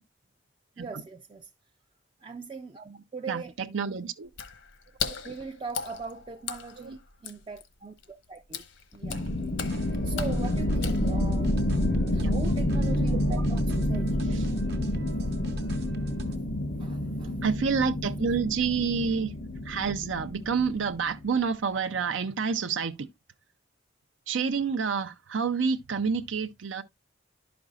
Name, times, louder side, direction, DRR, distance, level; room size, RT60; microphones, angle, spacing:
voice 1, 0.8-1.5 2.2-4.0 5.2-8.6 8.9-9.3 10.0-14.2 16.2-17.5, right 4 dB, 25° right, 0.4 m, -41 dB
voice 2, 3.7-4.3 5.0-5.2 6.8-7.0 12.2-12.3 13.3-13.4 14.3-14.4 17.4-19.3 19.7-22.9 24.3-26.8, right 5 dB, 80° right, 0.5 m, -28 dB
Water / Splash splatter, 4.3-11.5, left 6 dB, 75° left, 1.0 m, -39 dB
sound 1, 9.0-21.3, left 1 dB, 50° left, 0.6 m, -28 dB
sound 2, 9.6-16.4, right 2 dB, 55° right, 0.9 m, -44 dB
11.5 x 5.2 x 2.4 m
head